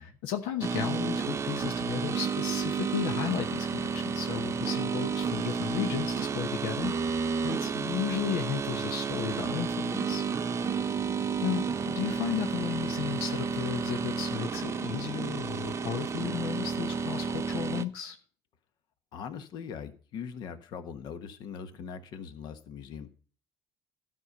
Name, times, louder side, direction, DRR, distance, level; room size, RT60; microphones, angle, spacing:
voice 1, 0.0-10.2 11.4-18.2, left 10 dB, 90° left, 6 dB, 1.0 m, -34 dB
sound 1, 0.6-17.8, right 5 dB, 35° right, 0.7 m, -31 dB
voice 2, 19.1-23.1, left 7 dB, 70° left, 10 dB, 1.3 m, -41 dB
12.5 x 5.6 x 6.7 m, 0.41 s
supercardioid pair, 90°, 8 cm